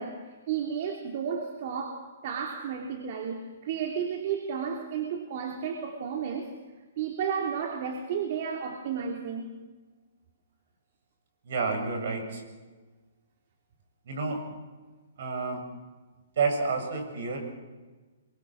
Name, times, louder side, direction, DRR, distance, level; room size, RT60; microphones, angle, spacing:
voice 1, 0.0-6.5 7.0-9.5, right 7 dB, 50° right, 3 dB, 3.0 m, -32 dB
voice 2, 11.4-12.4 14.1-14.4 15.2-15.6 16.4-17.5, right 4 dB, 65° right, 4 dB, 7.8 m, -29 dB
27.0 x 23.5 x 6.4 m, 1.3 s
hypercardioid pair, 145°, 0 cm